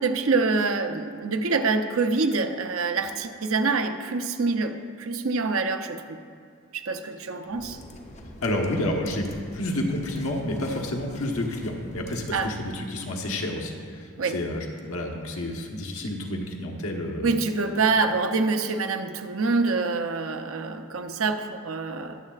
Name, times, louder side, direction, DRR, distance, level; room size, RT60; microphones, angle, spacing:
voice 1, 0.0-6.2 6.7-7.8 12.3-12.5 14.2-14.4 17.2-22.2, right 4 dB, 65° right, 7 dB, 0.7 m, -26 dB
sound 1, 7.5-12.8, left 1 dB, 30° left, 0.8 m, -44 dB
voice 2, 8.4-17.3 17.9-18.0, left 1 dB, 80° left, 1 dB, 1.2 m, -30 dB
21.5 x 7.5 x 2.4 m, 2.2 s
head